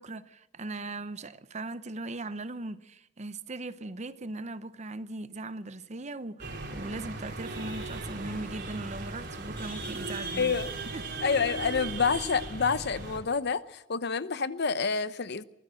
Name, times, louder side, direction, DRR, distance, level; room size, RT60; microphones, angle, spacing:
voice 1, 0.0-10.6 10.9-11.0, right 2 dB, 35° right, 0.8 m, -39 dB
sound 1, 6.4-13.2, right 2 dB, 60° right, 3.9 m, -38 dB
voice 2, 10.4-10.7 11.2-15.4, left 5 dB, 55° left, 0.8 m, -28 dB
23.5 x 15.0 x 7.6 m
head